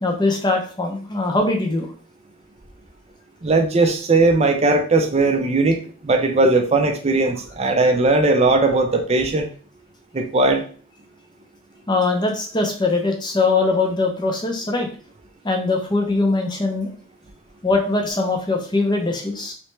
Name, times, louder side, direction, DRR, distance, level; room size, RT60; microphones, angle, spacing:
voice 1, 0.0-1.9 11.9-14.9 15.4-16.9 17.6-19.5, left 3 dB, 20° left, 2 dB, 0.6 m, -21 dB
voice 2, 3.4-5.8 6.0-9.5 10.1-10.6, right 3 dB, 30° right, 5 dB, 0.4 m, -18 dB
3.3 x 3.1 x 3.1 m, 0.42 s
head